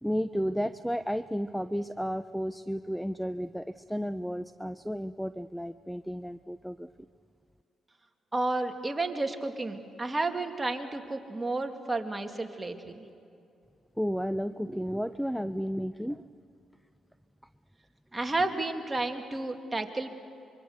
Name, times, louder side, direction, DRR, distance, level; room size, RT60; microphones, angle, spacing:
voice 1, 0.0-6.9 14.0-16.3, equal, ahead, 13 dB, 0.5 m, -32 dB
voice 2, 8.3-13.1 18.1-20.1, right 2 dB, 20° right, 4 dB, 2.4 m, -31 dB
25.5 x 23.5 x 6.7 m, 2.6 s
supercardioid pair, 60°, 0 cm